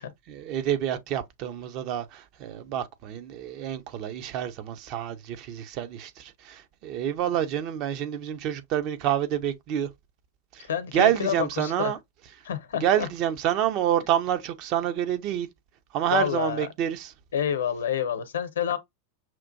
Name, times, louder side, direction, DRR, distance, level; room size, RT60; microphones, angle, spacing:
voice 1, 0.3-9.9 10.5-10.7 10.9-12.0 12.8-15.5 15.9-17.1, right 10 dB, 40° right, 0.7 m, -28 dB
voice 2, 10.6-11.9 12.4-13.1 16.1-16.7 17.3-18.8, left 8 dB, 65° left, 0.8 m, -28 dB
5.9 x 2.4 x 2.6 m
figure-of-eight pair, 90°, 0 cm